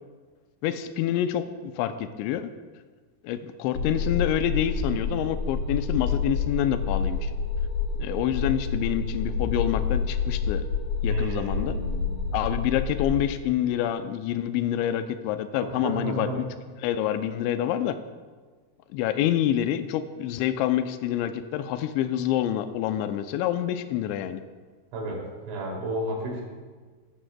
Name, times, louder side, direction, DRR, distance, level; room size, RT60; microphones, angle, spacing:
voice 1, 0.6-2.5 3.2-7.3 8.0-10.6 11.0-11.8 12.3-16.4 16.8-18.0 18.9-24.4, left 11 dB, 85° left, 9 dB, 2.6 m, -27 dB
sound 1, 3.7-13.2, left 5 dB, 65° left, 4.6 m, -28 dB
voice 2, 11.1-12.4 15.6-16.4 24.9-26.4, right 1 dB, 70° right, -2 dB, 5.1 m, -32 dB
17.0 x 14.0 x 2.2 m, 1.4 s
omnidirectional pair, 5.7 m